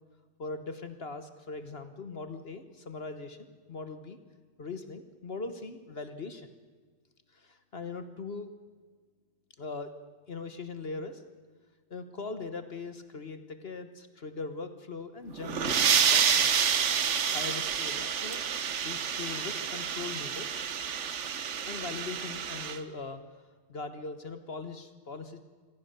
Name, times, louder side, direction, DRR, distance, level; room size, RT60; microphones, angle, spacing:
voice 1, 0.4-4.2 4.6-6.5 7.3-8.5 9.6-10.0 10.3-11.2 11.9-16.9 17.3-20.5 21.7-23.2 23.7-25.4, left 4 dB, 40° left, 10 dB, 0.9 m, -40 dB
sound 1, 15.3-22.8, right 7 dB, 50° right, 0.9 m, -28 dB
25.0 x 17.0 x 6.7 m, 1.5 s
omnidirectional pair, 2.3 m